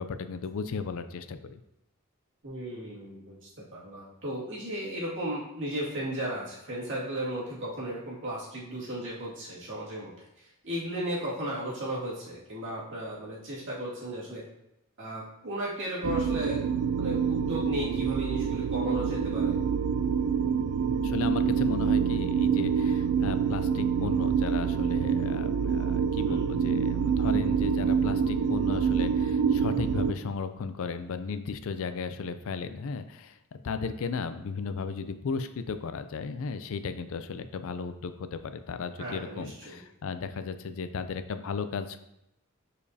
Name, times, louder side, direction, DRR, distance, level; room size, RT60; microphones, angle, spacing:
voice 1, 0.0-1.6 21.0-42.0, left 5 dB, 65° left, 10 dB, 0.4 m, -35 dB
voice 2, 2.4-14.4 15.0-16.6 17.0-19.6 26.3-26.5 39.0-39.8, right 1 dB, 60° right, -6 dB, 2.2 m, -35 dB
sound 1, 16.0-30.1, right 6 dB, 75° right, 0.3 m, -26 dB
6.8 x 5.0 x 2.8 m, 0.84 s
head